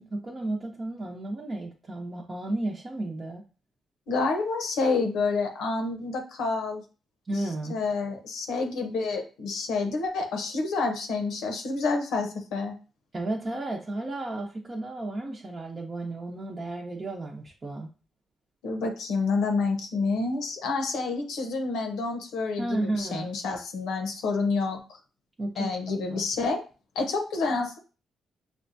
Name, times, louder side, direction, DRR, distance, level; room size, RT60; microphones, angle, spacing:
voice 1, 0.0-3.4 7.3-7.8 13.1-17.9 22.6-23.4 25.4-25.7 26.1-26.3, right 2 dB, 35° right, -2 dB, 0.8 m, -33 dB
voice 2, 4.1-6.8 7.7-12.7 18.6-24.8 25.6-26.6 26.9-27.8, left 3 dB, 85° left, 4 dB, 0.8 m, -28 dB
5.3 x 2.2 x 2.7 m, 0.34 s
supercardioid pair, 65°, 0 cm